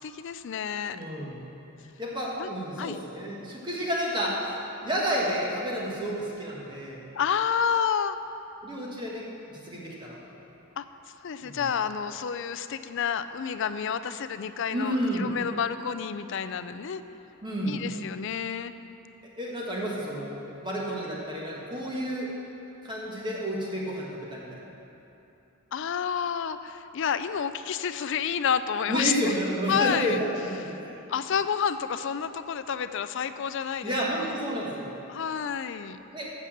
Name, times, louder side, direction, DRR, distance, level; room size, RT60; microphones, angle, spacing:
voice 1, 0.0-1.0 2.4-2.5 2.8-3.0 7.1-8.2 10.8-10.9 11.2-17.0 17.6-18.7 25.7-29.3 29.7-30.2 31.1-34.2 35.1-36.0, left 7 dB, 60° left, 12 dB, 0.4 m, -29 dB
voice 2, 0.9-1.4 2.0-4.4 4.8-7.0 8.6-10.2 11.4-11.7 14.7-15.3 17.4-17.8 19.4-22.3 22.8-24.6 28.9-31.0 33.8-34.9 36.1-36.3, equal, 20° right, -4 dB, 1.4 m, -31 dB
8.4 x 6.8 x 7.3 m, 2.9 s
head